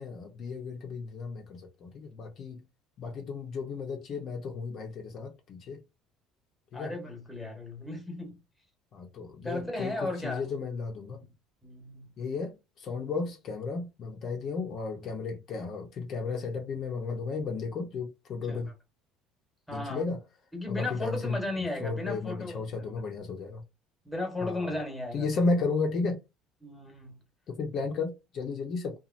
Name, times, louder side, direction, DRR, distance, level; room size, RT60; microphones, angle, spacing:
voice 1, 0.0-2.6 3.0-5.8 6.7-6.9 8.9-11.2 12.2-18.7 19.7-20.2 20.7-23.6 24.4-24.7 25.1-26.2 27.5-29.0, left 4 dB, 45° left, 0.6 m, -34 dB
voice 2, 6.7-8.4 9.4-10.4 11.1-11.3 11.6-12.1 18.5-18.7 19.7-20.0 20.5-23.0 24.0-25.3 26.6-27.2, left 2 dB, 5° left, 1.1 m, -35 dB
2.9 x 2.3 x 2.5 m
cardioid pair, 145°, 0 cm